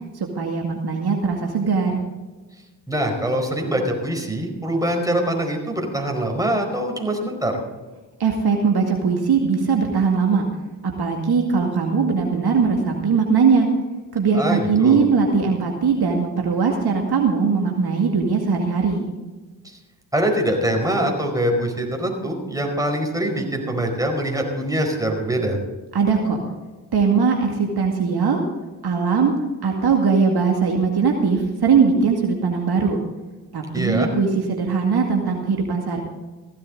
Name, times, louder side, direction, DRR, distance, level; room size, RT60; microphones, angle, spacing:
voice 1, 0.4-1.9 8.2-10.4 11.0-13.7 14.1-19.1 25.9-26.4 26.9-28.4 28.8-29.3 29.6-33.0 33.5-36.0, right 5 dB, 55° right, 1 dB, 2.2 m, -20 dB
voice 2, 2.9-7.6 14.3-15.0 19.6-19.8 20.1-25.6 33.7-34.1, right 1 dB, 5° right, 2 dB, 4.7 m, -23 dB
15.5 x 12.5 x 3.9 m, 1.2 s
hypercardioid pair, 45°, 45 cm